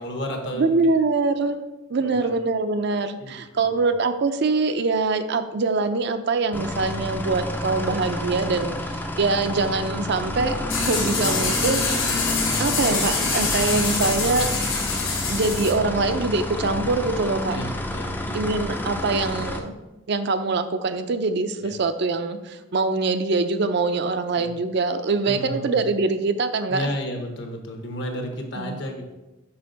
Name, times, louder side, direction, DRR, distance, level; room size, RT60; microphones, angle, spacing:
voice 1, 0.0-0.8 2.0-2.3 3.2-3.7 17.5-18.4 21.6-21.7 24.4-24.5 25.3-25.8 26.7-29.0, equal, 60° left, 3 dB, 1.1 m, -32 dB
voice 2, 0.5-1.6 1.9-11.9 12.6-14.5 15.3-17.6 18.3-19.7 20.1-26.9 28.6-28.8, right 3 dB, 55° right, 9 dB, 0.5 m, -24 dB
sound 1, 6.5-19.6, left 1 dB, 10° left, 0.4 m, -30 dB
sound 2, 10.7-15.7, left 4 dB, 80° left, 1.5 m, -25 dB
5.6 x 5.4 x 3.9 m, 1.0 s
head